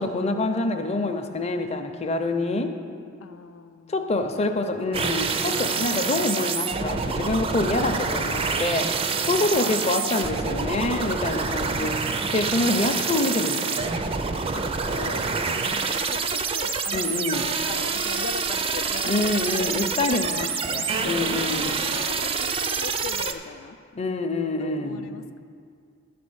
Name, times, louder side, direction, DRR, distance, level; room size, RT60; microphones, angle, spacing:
voice 1, 0.0-2.7 3.9-12.0 12.3-13.9 16.9-17.4 19.0-21.8 24.0-25.1, left 2 dB, 30° left, 5 dB, 0.6 m, -26 dB
voice 2, 3.2-4.7 5.7-5.9 9.6-11.2 11.7-12.4 14.5-17.4 17.7-19.3 19.6-19.9 20.8-23.8 24.6-25.4, left 5 dB, 80° left, 8 dB, 0.4 m, -40 dB
sound 1, 4.9-23.3, right 5 dB, 30° right, 0.4 m, -27 dB
12.0 x 4.2 x 7.9 m, 2.3 s
head